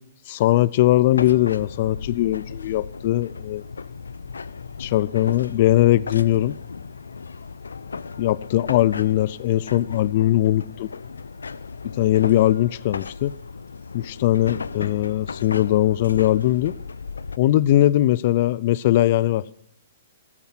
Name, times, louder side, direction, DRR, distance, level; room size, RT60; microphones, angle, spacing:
voice 1, 0.3-3.6 4.8-6.6 8.2-10.9 12.0-13.3 13.9-16.7 17.4-19.4, left 14 dB, 50° left, 0.5 m, -20 dB
sound 1, 1.1-17.4, left 5 dB, 80° left, 0.7 m, -36 dB
17.0 x 13.5 x 5.9 m
hypercardioid pair, 125°, 0 cm